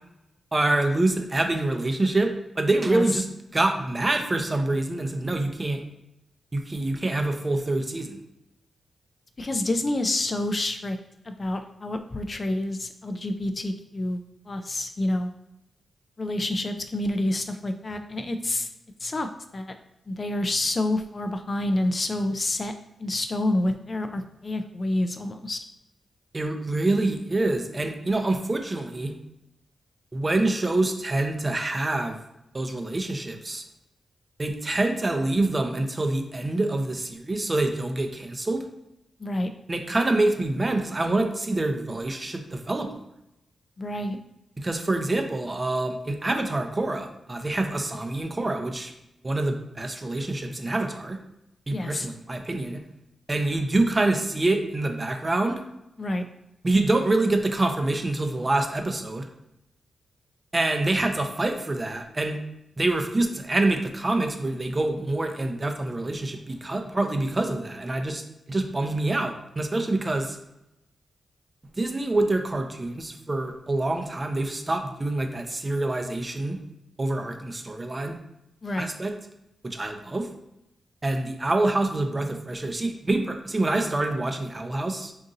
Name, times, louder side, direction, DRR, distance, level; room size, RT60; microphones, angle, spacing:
voice 1, 0.5-3.3 3.5-5.8 6.5-8.2 26.3-29.1 30.1-32.2 32.5-33.6 34.4-38.6 39.7-43.0 44.6-48.9 49.2-51.2 51.7-52.8 53.3-55.6 56.6-59.3 60.5-62.4 62.8-68.2 68.5-70.4 71.8-76.6 77.0-78.2 78.8-79.1 79.6-80.3 81.0-85.1, right 2 dB, 25° right, 5 dB, 0.5 m, -26 dB
voice 2, 9.4-11.0 11.2-14.2 14.5-15.3 16.2-18.7 19.0-19.7 20.1-22.7 23.0-25.6 39.2-39.5 43.8-44.2 51.7-52.1 56.0-56.3 78.6-78.9, left 1 dB, 35° left, 7 dB, 0.3 m, -28 dB
3.8 x 2.6 x 3.9 m, 0.87 s
cardioid pair, 95°, 0 cm